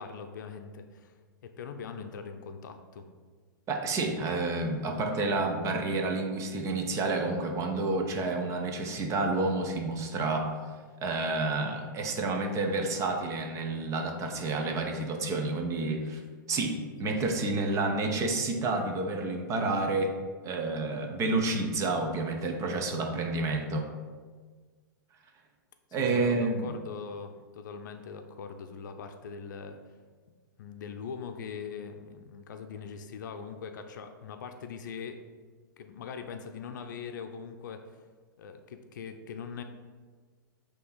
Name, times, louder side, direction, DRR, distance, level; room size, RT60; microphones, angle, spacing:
voice 1, 0.0-3.1 17.0-17.2 26.0-29.8 30.6-35.2 35.8-37.8 38.4-39.6, left 6 dB, 60° left, 6 dB, 0.6 m, -41 dB
voice 2, 3.7-10.5 11.0-16.2 16.5-20.1 20.4-23.9 25.9-26.7, right 3 dB, 25° right, 4 dB, 0.9 m, -29 dB
8.3 x 3.0 x 4.0 m, 1.5 s
hypercardioid pair, 115°, 11 cm